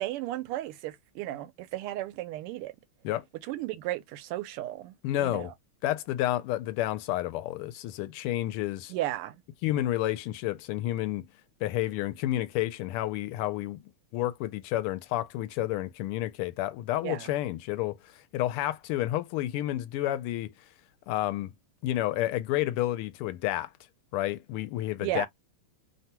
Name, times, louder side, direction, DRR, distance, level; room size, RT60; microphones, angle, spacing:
voice 1, 0.0-2.7 3.4-5.5 8.9-9.4 17.0-17.3 25.0-25.3, right 14 dB, 90° right, 1.5 m, -34 dB
voice 2, 5.0-5.5 5.8-8.9 9.6-11.2 11.6-18.0 18.3-20.5 21.1-21.5 21.8-23.7 24.1-25.3, left 14 dB, 85° left, 1.5 m, -30 dB
3.6 x 2.2 x 2.8 m
omnidirectional pair, 2.4 m